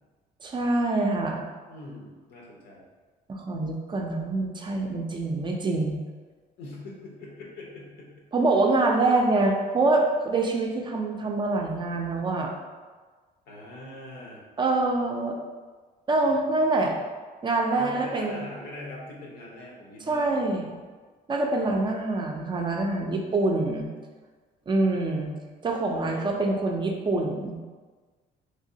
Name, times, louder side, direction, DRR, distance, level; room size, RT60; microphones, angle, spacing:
voice 1, 0.4-1.4 3.3-6.0 8.3-12.5 14.6-15.4 16.1-16.9 17.4-18.4 20.1-20.7 21.3-23.9 24.7-25.3 25.6-27.6, right 2 dB, 30° right, 1 dB, 0.4 m, -25 dB
voice 2, 1.7-2.9 6.6-8.2 13.5-14.4 17.8-20.4 25.9-26.4, left 1 dB, 75° left, -3 dB, 0.9 m, -42 dB
3.3 x 2.8 x 2.7 m, 1.4 s
cardioid pair, 110°, 17 cm